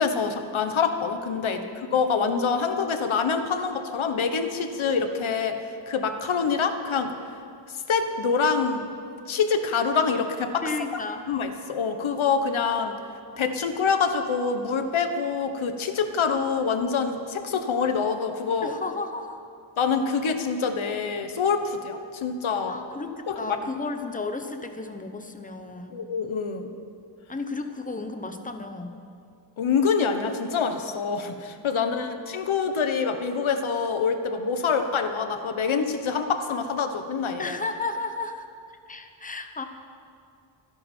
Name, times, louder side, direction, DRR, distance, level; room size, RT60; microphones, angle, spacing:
voice 1, 0.0-1.7 1.9-7.1 7.7-8.9 9.3-10.6 10.9-11.0 11.3-13.0 13.4-18.7 19.8-22.8 23.3-23.6 25.9-26.7 29.6-37.6, left 5 dB, 75° left, 7 dB, 1.3 m, -26 dB
voice 2, 1.4-1.7 10.6-11.2 18.6-19.4 22.7-26.0 27.3-29.0 31.7-32.2 37.4-38.5 38.9-39.6, left 3 dB, 15° left, 7 dB, 0.9 m, -33 dB
25.5 x 11.0 x 4.5 m, 2.4 s
wide cardioid pair, 155°, 48 cm